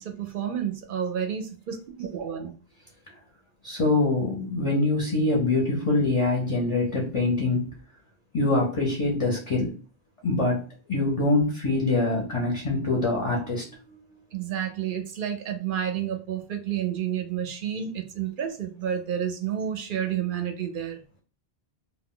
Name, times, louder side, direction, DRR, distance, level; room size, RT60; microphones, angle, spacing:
voice 1, 0.0-2.5 14.3-21.0, right 9 dB, 60° right, 6 dB, 0.6 m, -30 dB
voice 2, 3.6-7.7 8.3-9.7 10.2-10.6 10.9-13.7, left 2 dB, 40° left, -1 dB, 0.6 m, -24 dB
2.2 x 2.2 x 3.6 m, 0.37 s
omnidirectional pair, 1.1 m